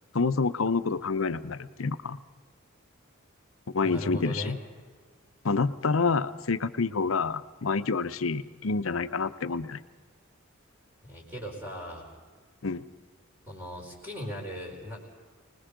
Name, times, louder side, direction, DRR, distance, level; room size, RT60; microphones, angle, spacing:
voice 1, 0.1-2.2 3.7-4.6 5.4-9.8 12.6-12.8, left 4 dB, 85° left, 13 dB, 0.8 m, -28 dB
voice 2, 3.8-4.6 11.0-12.1 13.5-15.0, equal, 10° right, -2 dB, 4.5 m, -38 dB
25.0 x 20.0 x 5.1 m, 1.5 s
head